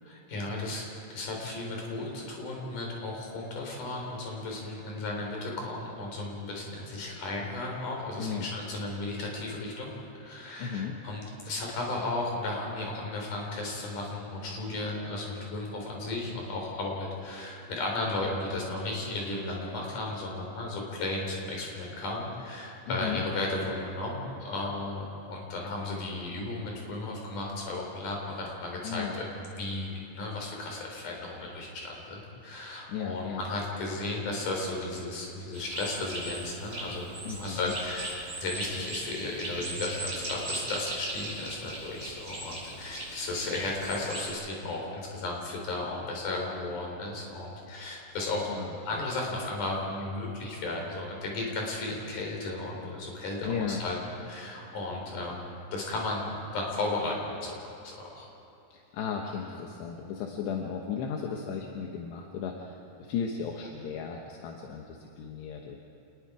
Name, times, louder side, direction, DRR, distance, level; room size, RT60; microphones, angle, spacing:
voice 1, 0.0-54.0 54.3-58.3, left 2 dB, 50° left, -1 dB, 5.2 m, -35 dB
voice 2, 10.6-11.0 22.9-23.2 28.8-29.1 32.9-33.4 37.2-37.7 48.2-49.1 53.4-53.8 58.7-65.8, left 6 dB, 75° left, 1 dB, 3.3 m, -35 dB
sound 1, 35.5-44.3, right 2 dB, 25° right, 5.7 m, -38 dB
28.0 x 20.0 x 4.9 m, 2.9 s
omnidirectional pair, 5.0 m